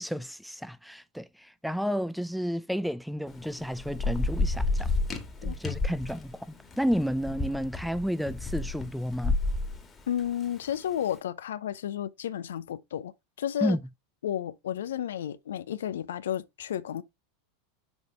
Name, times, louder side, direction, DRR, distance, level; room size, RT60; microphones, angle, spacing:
voice 1, 0.0-4.9 5.4-9.4 13.6-13.8, equal, ahead, 0.4 m, -31 dB
Thunder / Rain, 3.3-10.9, left 3 dB, 20° left, 1.6 m, -31 dB
voice 2, 10.1-13.1 13.4-13.8 14.2-17.0, left 10 dB, 75° left, 0.6 m, -32 dB
6.3 x 5.1 x 3.4 m
hypercardioid pair, 90°, 0 cm